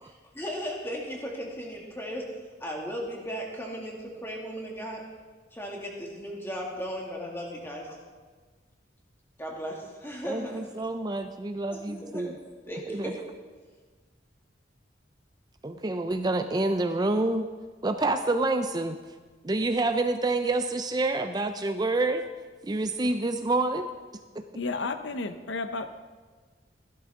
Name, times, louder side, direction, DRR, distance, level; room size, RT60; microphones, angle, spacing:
voice 1, 0.0-5.0 5.5-8.0 9.4-10.7 11.7-13.2, equal, 15° left, -1 dB, 2.2 m, -36 dB
voice 2, 10.2-12.3 12.9-13.1 15.6-17.5 17.8-19.0 19.4-22.2 22.6-23.9 24.4-24.5, right 2 dB, 20° right, 7 dB, 0.4 m, -27 dB
voice 3, 24.6-25.9, left 3 dB, 75° left, 9 dB, 0.7 m, -32 dB
15.5 x 12.0 x 3.7 m, 1.4 s
head